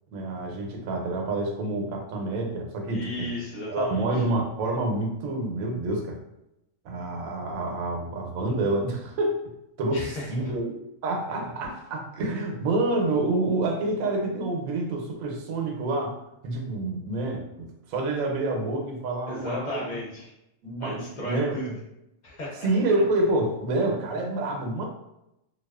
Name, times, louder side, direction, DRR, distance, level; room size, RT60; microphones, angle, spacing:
voice 1, 0.1-3.3 3.7-6.2 6.8-9.4 9.8-10.7 11.0-16.2 16.4-19.9 20.6-21.7 22.6-24.8, right 2 dB, 90° right, 2 dB, 1.0 m, -28 dB
voice 2, 2.9-4.1 9.9-10.5 19.3-20.3 20.8-21.7 22.2-22.7, left 1 dB, 45° left, -4 dB, 0.6 m, -34 dB
2.3 x 2.3 x 2.3 m, 0.85 s
omnidirectional pair, 1.4 m